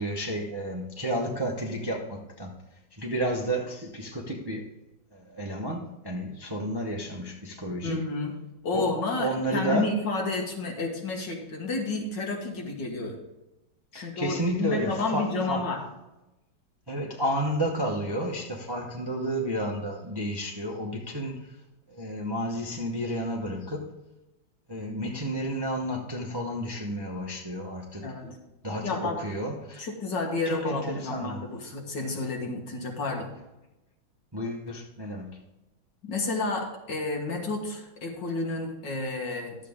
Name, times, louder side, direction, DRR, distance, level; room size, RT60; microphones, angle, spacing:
voice 1, 0.0-2.5 2.9-4.7 5.1-8.0 8.7-9.9 13.9-15.6 16.9-21.5 21.9-23.9 24.7-28.1 28.6-29.8 30.4-31.4 34.3-35.4, right 1 dB, 20° right, 0 dB, 0.7 m, -31 dB
voice 2, 7.8-8.3 8.6-13.2 13.9-15.8 28.0-28.4 28.8-29.2 29.8-33.3 36.0-39.6, left 3 dB, 65° left, 0 dB, 2.3 m, -31 dB
12.0 x 7.5 x 3.6 m, 0.96 s
omnidirectional pair, 2.1 m